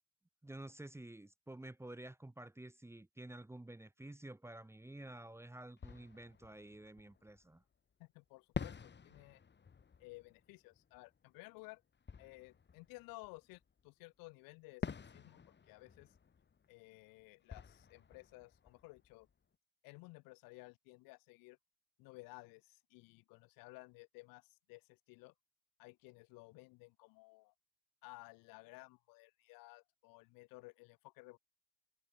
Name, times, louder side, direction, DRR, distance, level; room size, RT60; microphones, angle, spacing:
voice 1, 0.4-7.6, right 1 dB, 5° right, 1.7 m, -51 dB
Fireworks, 5.8-7.7 8.5-13.9 14.8-19.6, left 6 dB, 30° left, 7.3 m, -49 dB
voice 2, 8.0-9.4 10.0-11.8 12.2-14.9 15.1-15.4 15.7-16.1 16.7-19.3 19.8-21.6 22.0-25.3 25.8-27.5 28.0-31.4, left 25 dB, 75° left, 7.7 m, -56 dB
supercardioid pair, 90°, 34 cm